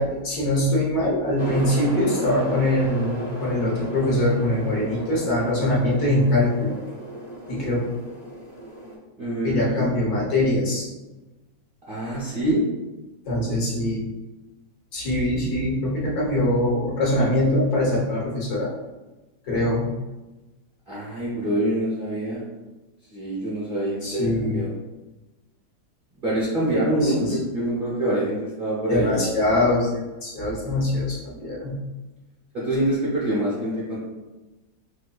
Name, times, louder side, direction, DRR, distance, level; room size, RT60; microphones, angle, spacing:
voice 1, 0.0-6.8 7.5-7.8 9.4-10.9 13.3-14.0 14.9-18.7 19.5-19.9 24.0-24.6 27.0-27.4 28.9-29.9 30.2-31.8, left 1 dB, 60° left, -5 dB, 1.5 m, -23 dB
sound 1, 1.4-8.9, right 1 dB, 20° right, 0.4 m, -34 dB
voice 2, 9.2-9.9 11.9-12.6 20.9-22.4 23.1-24.7 26.2-29.3 32.5-34.0, right 1 dB, 45° right, -8 dB, 0.7 m, -25 dB
4.2 x 2.7 x 2.2 m, 1.1 s
omnidirectional pair, 1.9 m